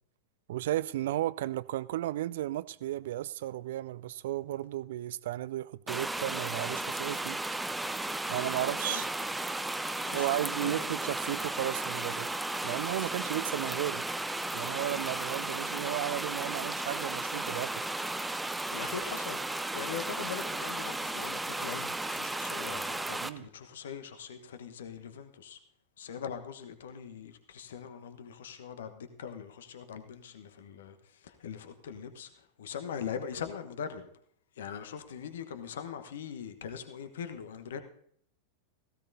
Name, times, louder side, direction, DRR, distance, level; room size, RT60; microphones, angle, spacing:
voice 1, 0.5-7.4 8.3-9.1 10.1-12.3 12.6-14.1 14.5-17.9 23.2-23.5, right 14 dB, 55° right, 0.4 m, -34 dB
sound 1, 5.9-23.3, right 2 dB, 5° right, 0.5 m, -34 dB
voice 2, 10.0-10.9 18.7-25.6 26.0-31.0 31.2-32.3 32.6-34.1 34.6-37.8, left 7 dB, 60° left, 1.1 m, -41 dB
17.0 x 15.5 x 2.7 m
figure-of-eight pair, 90°, 0 cm